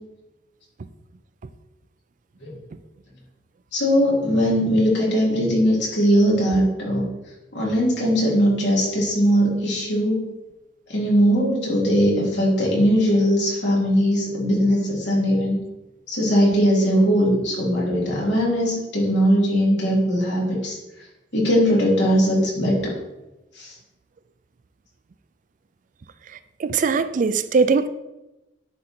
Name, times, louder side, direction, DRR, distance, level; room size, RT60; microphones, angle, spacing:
voice 1, 3.7-7.1 7.5-10.2 10.9-15.6 16.1-20.8 21.3-22.9 23.6-23.7, equal, 75° left, 2.8 m, -20 dB
voice 2, 26.6-27.9, right 4 dB, 45° right, 0.4 m, -20 dB
10.0 x 4.0 x 4.3 m
head